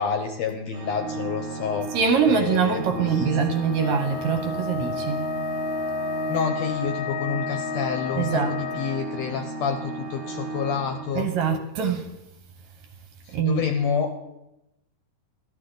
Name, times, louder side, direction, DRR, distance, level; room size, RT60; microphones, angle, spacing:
voice 1, 0.0-1.9 2.3-3.3 6.3-11.3 13.3-14.1, left 6 dB, 70° left, 1.7 m, -28 dB
Organ, 0.7-11.5, right 2 dB, 50° right, 1.6 m, -35 dB
voice 2, 1.9-5.2 8.1-8.5 11.1-12.1 13.3-13.6, right 6 dB, 70° right, 2.0 m, -24 dB
Wind instrument woodwind instrument, 3.8-9.1, left 5 dB, 85° left, 2.2 m, -31 dB
13.0 x 12.0 x 3.9 m
omnidirectional pair, 3.8 m